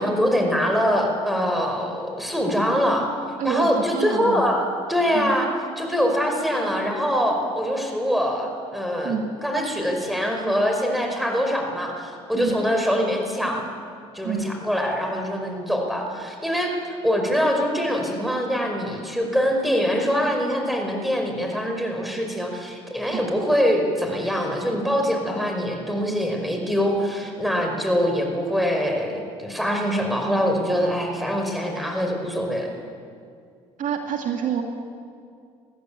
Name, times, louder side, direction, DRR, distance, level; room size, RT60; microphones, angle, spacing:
voice 1, 0.0-3.1 3.4-5.5 5.8-9.2 9.4-13.6 14.1-32.7, equal, ahead, 2 dB, 5.2 m, -24 dB
voice 2, 3.4-4.5 5.1-5.4 9.0-9.2 12.3-12.6 14.2-14.5 23.1-23.2 33.8-34.6, right 7 dB, 55° right, 3 dB, 2.1 m, -27 dB
21.0 x 15.0 x 9.1 m, 2.3 s
supercardioid pair, 70°, 15 cm